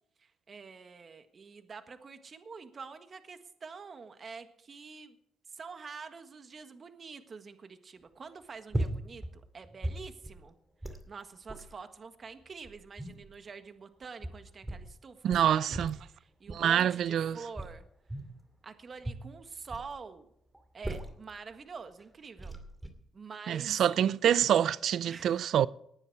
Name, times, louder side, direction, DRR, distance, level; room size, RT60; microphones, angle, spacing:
voice 1, 0.2-5.2 5.5-10.5 10.8-15.8 16.1-17.8 18.6-20.3 20.7-22.6 23.1-23.8 25.0-25.4, right 5 dB, 40° right, 1.5 m, -47 dB
sound 1, 8.7-9.4 9.6-10.4 10.8-11.0 11.5-11.7 12.4-13.4 14.0-14.9 15.3-16.1 16.5-16.8 17.5-18.4 19.0-19.9 20.5-21.3 22.0-22.1 22.4-22.9, right 1 dB, 10° right, 2.4 m, -38 dB
voice 2, 15.2-15.9 16.5-17.4 23.5-25.7, right 9 dB, 70° right, 0.5 m, -26 dB
19.0 x 9.9 x 4.7 m
cardioid pair, 90°, 0 cm